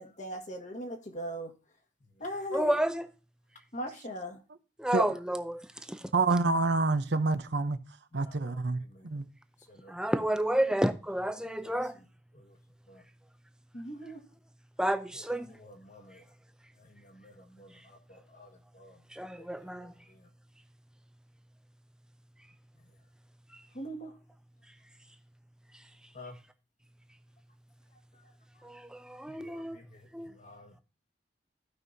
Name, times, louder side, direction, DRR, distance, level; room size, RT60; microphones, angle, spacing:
voice 1, 0.0-1.5 2.2-2.8 3.7-4.4 8.1-9.2 9.7-9.9 11.6-12.1 12.3-12.6 12.9-13.0 13.7-14.2 15.1-15.2 15.5-16.3 16.8-19.0 19.3-20.3 23.7-24.2 26.1-26.4 28.1-28.3 28.6-28.7 29.3-30.8, equal, 45° left, 1.7 m, -43 dB
voice 2, 2.5-3.0 4.8-5.6 5.9-6.0 9.9-12.0 14.8-15.5 19.1-19.9 28.6-29.8 30.1-30.4, right 1 dB, 5° right, 0.6 m, -30 dB
voice 3, 6.1-7.8 8.1-9.2, right 3 dB, 70° right, 0.8 m, -27 dB
16.0 x 5.5 x 2.7 m
head